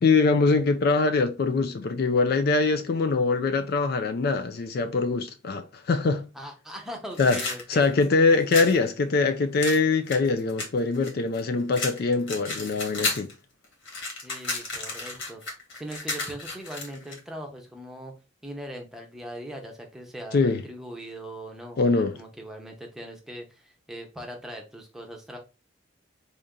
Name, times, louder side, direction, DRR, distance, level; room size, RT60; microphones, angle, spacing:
voice 1, 0.0-6.2 7.2-7.4 7.7-13.3 20.3-20.6 21.8-22.1, left 4 dB, 50° left, 0.4 m, -23 dB
voice 2, 6.3-7.8 14.2-15.4 15.7-18.1 18.4-25.4, right 1 dB, ahead, 0.8 m, -40 dB
sound 1, 7.1-8.8 9.6-11.4 11.7-13.3 13.6-17.2, left 3 dB, 70° left, 1.6 m, -33 dB
3.7 x 2.7 x 3.6 m
head